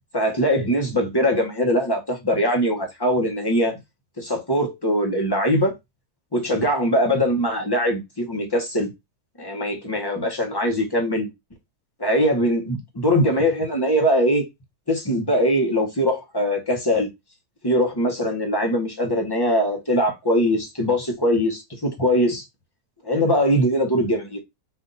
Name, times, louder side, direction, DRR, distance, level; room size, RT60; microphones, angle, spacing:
voice 1, 0.1-3.8 4.2-5.7 6.3-8.9 9.4-11.3 12.0-14.5 14.9-17.1 17.6-22.4 23.0-24.4, equal, 15° left, 0.9 m, -21 dB
4.5 x 2.6 x 3.9 m
omnidirectional pair, 1.9 m